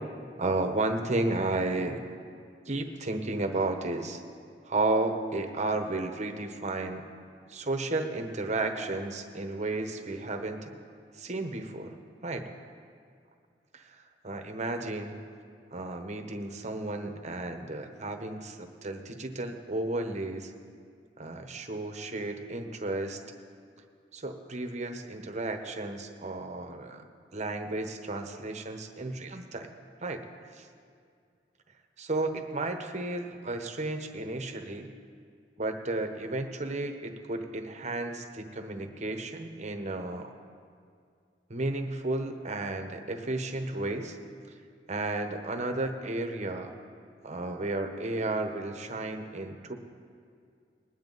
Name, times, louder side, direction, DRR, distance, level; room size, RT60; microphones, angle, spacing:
voice 1, 0.4-2.0 2.7-4.2 4.7-7.0 7.5-10.7 11.2-11.9 12.2-12.5 13.7-14.0 14.2-15.2 15.7-20.5 21.2-23.2 24.1-27.0 27.3-29.7 30.0-30.2 30.6-30.7 32.0-34.9 35.6-40.3 41.5-44.2 44.9-46.7 47.2-49.7, right 2 dB, 40° right, 6 dB, 1.0 m, -33 dB
21.0 x 9.1 x 4.0 m, 2.2 s
head